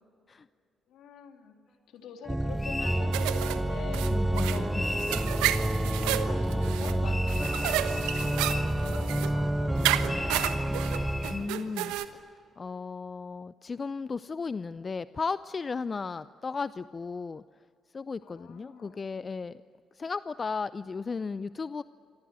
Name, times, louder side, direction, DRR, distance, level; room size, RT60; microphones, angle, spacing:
voice 1, 0.9-1.5 1.9-4.7 5.4-10.5 18.2-19.0, left 7 dB, 75° left, 3 dB, 3.2 m, -45 dB
Organ, 2.3-11.5, right 1 dB, 10° right, 0.9 m, -29 dB
sound 1, 2.6-3.1 4.7-5.3 7.0-8.7 10.1-11.5, left 2 dB, 25° left, 3.3 m, -37 dB
sound 2, 3.1-12.0, right 14 dB, 80° right, 1.1 m, -32 dB
voice 2, 4.1-4.9 11.3-12.2 12.6-17.4 17.9-19.6 19.9-21.8, left 4 dB, 40° left, 16 dB, 0.6 m, -35 dB
27.0 x 23.5 x 7.7 m, 2.4 s
hypercardioid pair, 45°, 0 cm